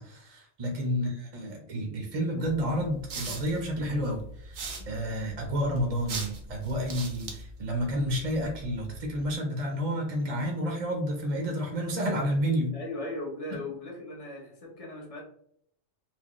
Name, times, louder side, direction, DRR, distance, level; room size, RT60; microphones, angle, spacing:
voice 1, 0.0-12.8, equal, 35° right, 1 dB, 0.7 m, -30 dB
sound 1, 2.4-9.3, right 3 dB, 75° right, 1.1 m, -41 dB
voice 2, 12.7-15.2, left 2 dB, 30° left, -1 dB, 0.8 m, -38 dB
4.6 x 2.1 x 3.0 m, 0.69 s
omnidirectional pair, 1.4 m